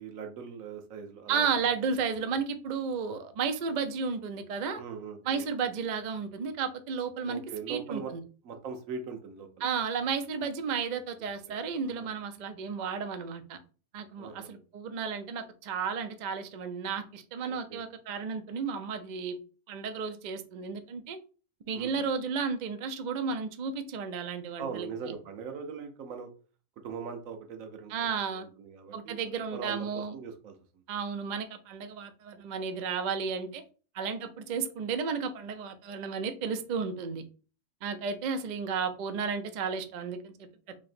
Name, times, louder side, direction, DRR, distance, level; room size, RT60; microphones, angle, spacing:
voice 1, 0.0-1.5 4.8-5.4 7.3-8.1 8.4-9.7 11.4-12.1 14.2-14.5 17.5-17.8 21.7-22.1 24.6-26.3 26.8-29.2 29.5-30.6, right 6 dB, 90° right, 6 dB, 1.1 m, -41 dB
voice 2, 1.3-4.8 5.3-7.4 7.7-8.2 9.6-13.6 13.9-19.4 19.7-21.2 21.7-25.1 27.9-28.5 28.9-30.2 30.9-33.6 33.9-37.2 37.8-40.3, right 5 dB, 70° right, 9 dB, 0.4 m, -33 dB
3.1 x 2.8 x 4.2 m, 0.37 s
omnidirectional pair, 1.4 m